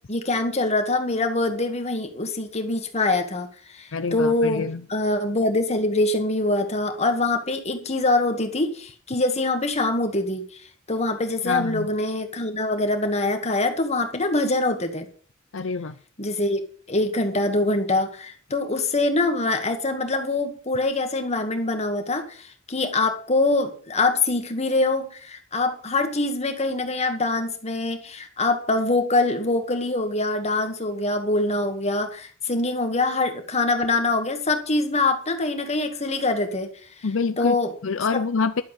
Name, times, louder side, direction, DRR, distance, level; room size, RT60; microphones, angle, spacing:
voice 1, 0.1-3.5 3.7-10.6 10.9-15.1 16.2-16.6 16.9-36.7 37.4-37.7, left 2 dB, 30° left, 2.0 m, -24 dB
voice 2, 3.9-4.8 11.4-11.9 15.5-16.0 37.0-37.6 37.8-38.6, left 4 dB, 70° left, 0.6 m, -26 dB
11.5 x 7.5 x 7.3 m
head